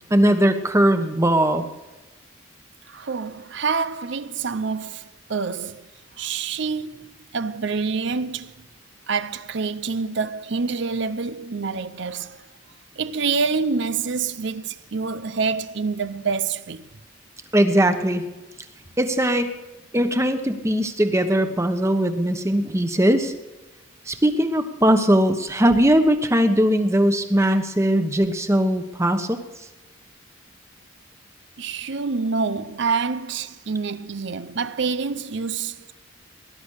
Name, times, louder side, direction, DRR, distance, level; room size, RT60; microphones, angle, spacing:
voice 1, 0.1-1.7 17.5-18.2 19.0-19.5 19.9-23.3 24.1-29.4, right 1 dB, 15° right, 1.2 m, -20 dB
voice 2, 2.9-5.9 6.2-8.5 9.1-12.5 13.0-16.8 31.6-35.9, right 4 dB, 60° right, 0.6 m, -27 dB
19.0 x 11.5 x 6.5 m
head